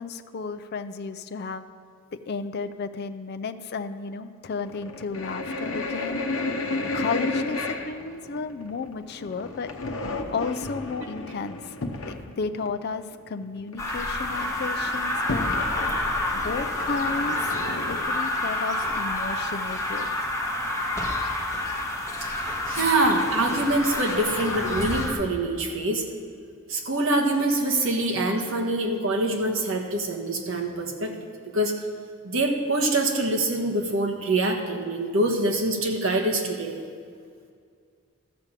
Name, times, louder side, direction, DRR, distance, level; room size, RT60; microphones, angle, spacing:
voice 1, 0.0-1.6 2.1-6.2 6.9-9.7 10.3-11.7 12.0-15.5 16.3-17.4 17.8-20.3, left 4 dB, 50° left, 9 dB, 0.4 m, -33 dB
sound 1, 4.5-12.2 12.6-12.7 13.1-13.2 13.4-13.9 14.2-18.0, left 2 dB, 65° left, 0.9 m, -32 dB
sound 2, 13.8-25.1, left 1 dB, 15° left, 1.3 m, -28 dB
voice 2, 22.2-26.0 26.7-31.1 31.5-31.7 32.2-36.8, right 2 dB, 65° right, 2 dB, 1.4 m, -25 dB
13.5 x 5.1 x 7.5 m, 2.1 s
head